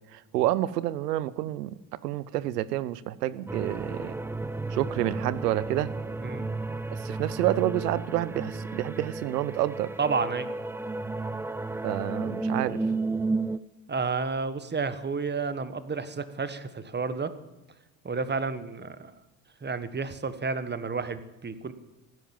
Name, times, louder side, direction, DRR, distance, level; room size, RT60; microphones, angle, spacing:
voice 1, 0.1-4.2 4.7-5.9 6.9-9.9 11.8-12.8, right 14 dB, 90° right, 18 dB, 0.8 m, -29 dB
sound 1, 3.5-13.6, right 3 dB, 5° right, 0.5 m, -33 dB
voice 2, 10.0-10.5 13.9-17.3 18.0-19.1 19.6-21.7, right 4 dB, 20° right, 12 dB, 1.5 m, -31 dB
15.5 x 11.0 x 7.4 m, 1.0 s
hypercardioid pair, 65°, 47 cm